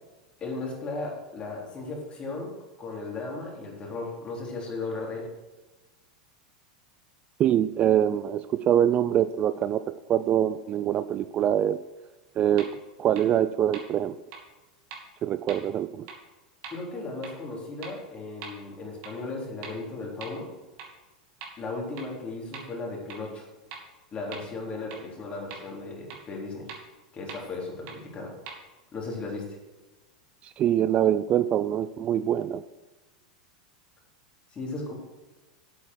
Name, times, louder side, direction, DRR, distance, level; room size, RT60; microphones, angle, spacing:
voice 1, 0.4-2.5 2.8-5.3 16.7-20.5 21.6-23.4 24.1-26.7 27.1-28.3 28.9-29.5 34.5-34.9, left 3 dB, 30° left, -1 dB, 3.7 m, -36 dB
voice 2, 7.4-11.8 12.4-12.7 13.0-14.2 15.2-16.1 30.4-32.6, right 10 dB, 35° right, 14 dB, 0.4 m, -24 dB
sound 1, 12.6-12.7 13.2-13.3 13.7-13.8 14.3-14.4 14.9-15.0 15.5-15.6 16.1-16.2 16.6-16.7 17.2-17.3 17.8-17.9 18.4-18.5 19.0-19.1 19.6-19.7 20.2-20.3 20.8-20.9 21.4-21.5 22.0-22.1 22.5-22.6 23.1-23.2 23.7-23.8 24.3-24.4 24.9-25.0 25.5-25.6 26.1-26.2 26.7-26.8 27.3-27.4 27.9-28.0 28.5-28.6, right 6 dB, 55° right, 2.5 m, -40 dB
8.4 x 8.3 x 6.3 m, 1.2 s
hypercardioid pair, 90°, 4 cm